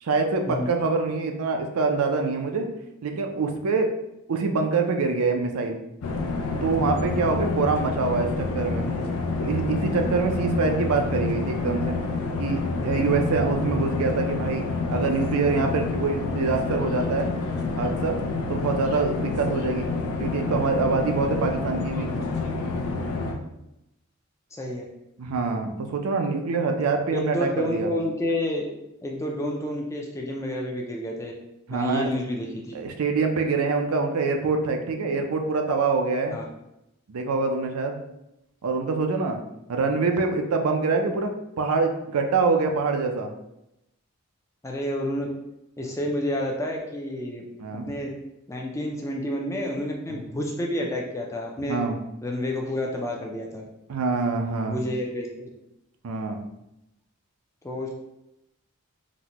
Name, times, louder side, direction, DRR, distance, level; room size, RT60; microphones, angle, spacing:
voice 1, 0.0-2.7 3.0-3.9 4.3-5.8 6.6-8.9 9.4-12.0 12.4-14.6 14.9-17.3 17.8-18.2 18.5-22.1 25.2-27.9 31.7-32.1 32.7-36.4 37.1-38.0 38.6-39.4 39.7-41.3 41.6-43.3 47.6-48.0 50.1-50.2 51.7-52.0 53.9-54.8 56.0-56.4, right 4 dB, 80° right, 4 dB, 0.4 m, -25 dB
sound 1, 6.0-23.3, left 3 dB, 80° left, 0.5 m, -28 dB
voice 2, 24.5-24.8 26.4-26.5 27.1-28.7 29.0-31.3 31.7-32.8 36.3-36.4 44.6-45.3 45.8-47.5 47.9-48.1 48.5-51.8 52.2-53.6 54.7-55.5 57.6-58.0, left 1 dB, 15° left, -1 dB, 0.4 m, -29 dB
4.0 x 2.1 x 2.9 m, 0.87 s
head